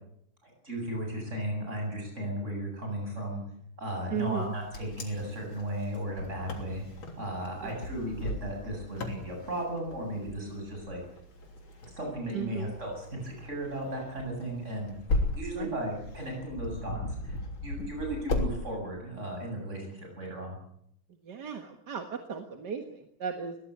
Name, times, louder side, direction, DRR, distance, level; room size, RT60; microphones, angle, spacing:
voice 1, 0.4-3.4 3.8-6.8 7.1-11.0 11.9-14.9 15.3-20.6, right 1 dB, 30° right, 1 dB, 8.3 m, -35 dB
voice 2, 4.1-4.6 7.6-7.8 12.3-12.7 15.5-15.7 21.2-23.6, right 6 dB, 55° right, 5 dB, 2.1 m, -36 dB
Wind, 4.3-18.5, left 2 dB, 65° left, 4.1 m, -37 dB
22.0 x 18.0 x 8.5 m, 0.72 s
omnidirectional pair, 2.3 m